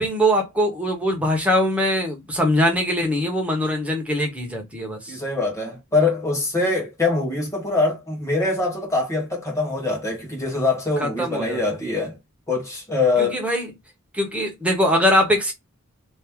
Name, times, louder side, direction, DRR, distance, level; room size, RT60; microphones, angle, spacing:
voice 1, 0.0-5.2 11.0-11.6 13.3-13.7 14.1-15.5, equal, 5° right, 1.1 m, -22 dB
voice 2, 5.1-12.2 12.5-13.4, left 3 dB, 15° left, 1.5 m, -23 dB
3.0 x 2.7 x 3.6 m
head